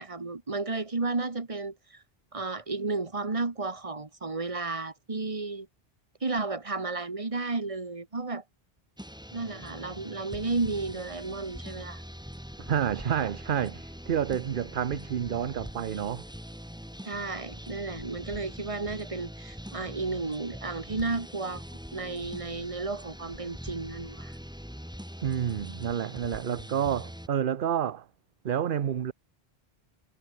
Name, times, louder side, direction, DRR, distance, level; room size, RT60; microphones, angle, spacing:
voice 1, 0.0-2.0 2.3-5.7 6.2-8.4 9.3-12.0 17.0-21.6 21.9-24.4, right 3 dB, 30° right, 1.7 m, -33 dB
sound 1, 9.0-27.3, equal, 5° right, 4.8 m, -43 dB
voice 2, 12.6-16.2 25.2-28.1 28.4-29.1, right 9 dB, 60° right, 0.9 m, -29 dB
omnidirectional pair, 1.1 m